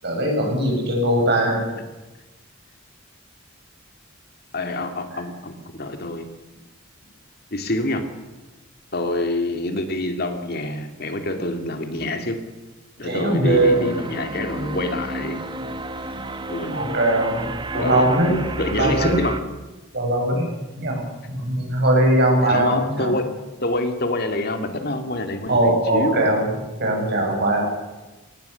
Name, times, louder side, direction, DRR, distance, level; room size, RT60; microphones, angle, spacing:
voice 1, 0.0-1.8 5.1-5.2 13.0-14.0 15.5-15.7 16.7-18.4 18.8-19.3 19.9-20.5 20.8-21.0 21.3-23.1 25.5-26.5 26.8-27.7, right 1 dB, 55° right, 1 dB, 7.4 m, -20 dB
voice 2, 4.5-6.3 7.5-8.0 8.9-12.4 13.0-15.4 16.5-17.0 17.7-19.4 22.4-23.3 23.6-26.3, left 2 dB, 50° left, 5 dB, 2.4 m, -26 dB
sound 1, 13.5-19.4, right 1 dB, 25° right, 1.2 m, -31 dB
24.0 x 18.5 x 7.0 m, 1.1 s
head